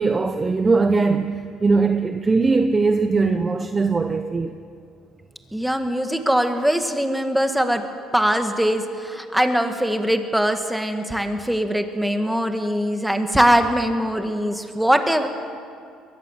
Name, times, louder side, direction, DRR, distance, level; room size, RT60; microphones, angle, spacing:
voice 1, 0.0-4.6, right 4 dB, 20° right, 0.8 m, -20 dB
voice 2, 5.5-7.8 8.1-15.3, equal, 5° right, 1.9 m, -21 dB
22.5 x 19.0 x 7.4 m
cardioid pair, 105°, 0 cm